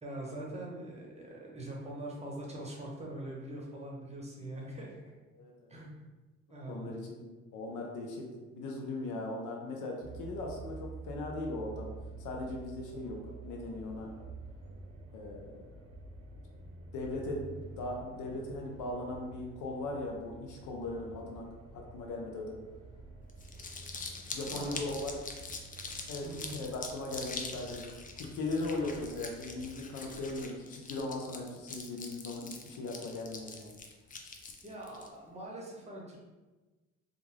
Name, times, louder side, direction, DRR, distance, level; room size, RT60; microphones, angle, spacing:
voice 1, 0.0-5.0 5.7-6.0 6.5-6.9 24.5-24.9 26.2-26.6 34.6-36.2, right 1 dB, 20° right, -3 dB, 0.8 m, -43 dB
voice 2, 5.3-5.7 6.7-7.2 7.5-8.3 8.5-11.9 12.2-13.2 13.4-14.1 15.1-15.8 16.9-21.5 21.7-22.6 24.3-25.2 26.1-27.9 28.2-33.7, left 2 dB, 80° left, 0 dB, 0.6 m, -38 dB
sound 1, 10.0-29.8, right 3 dB, 55° right, 0.6 m, -49 dB
Crumpling crinkling, 23.3-35.1, left 4 dB, 30° left, 0.4 m, -44 dB
2.4 x 2.2 x 3.2 m, 1.2 s
cardioid pair, 90°, 30 cm